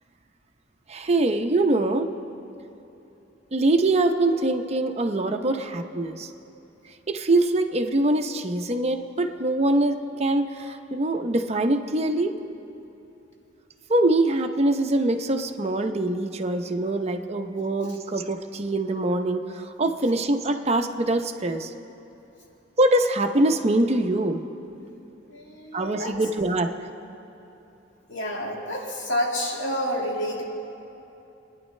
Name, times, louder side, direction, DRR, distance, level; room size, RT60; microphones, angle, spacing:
voice 1, 0.9-2.1 3.5-6.3 7.1-12.3 13.9-19.4 19.8-21.7 22.8-24.4 25.7-26.7, right 2 dB, 35° right, 5 dB, 0.7 m, -23 dB
voice 2, 25.3-26.1 28.1-30.5, equal, 80° left, -2 dB, 2.2 m, -29 dB
25.5 x 9.9 x 3.2 m, 3.0 s
head